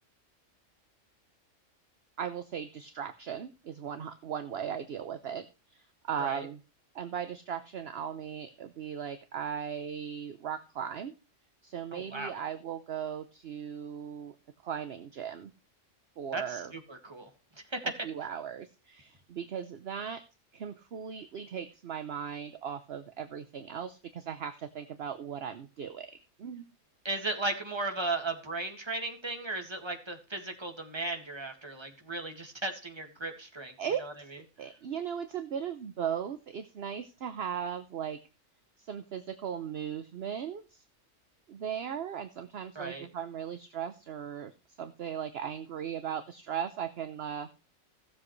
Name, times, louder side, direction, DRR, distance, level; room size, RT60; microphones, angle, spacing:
voice 1, 2.2-6.6 6.9-11.1 11.6-14.3 14.6-15.5 16.2-16.7 18.0-20.2 20.5-26.1 26.4-26.6 33.8-34.0 34.6-38.2 38.8-40.8 41.5-47.5, right 8 dB, 55° right, 10 dB, 1.0 m, -37 dB
voice 2, 11.9-12.4 16.3-17.3 17.7-17.9 27.0-34.1 42.8-43.1, right 2 dB, 20° right, 4 dB, 1.9 m, -36 dB
16.0 x 7.4 x 3.1 m, 0.33 s
omnidirectional pair, 1.4 m